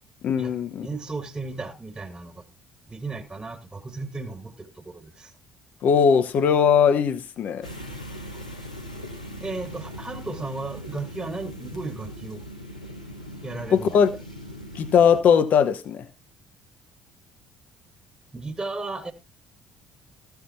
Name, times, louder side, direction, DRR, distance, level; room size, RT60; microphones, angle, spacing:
voice 1, 0.2-0.9 5.8-7.7 13.7-14.1 14.7-16.0, left 7 dB, 50° left, 1.1 m, -20 dB
voice 2, 0.8-2.4 2.9-5.3 8.3-8.4 9.4-12.5 13.4-14.0 18.3-19.1, right 3 dB, 20° right, 1.9 m, -35 dB
sound 1, 7.6-15.2, equal, 90° left, 1.2 m, -39 dB
14.5 x 5.9 x 4.2 m
figure-of-eight pair, 50°, 4 cm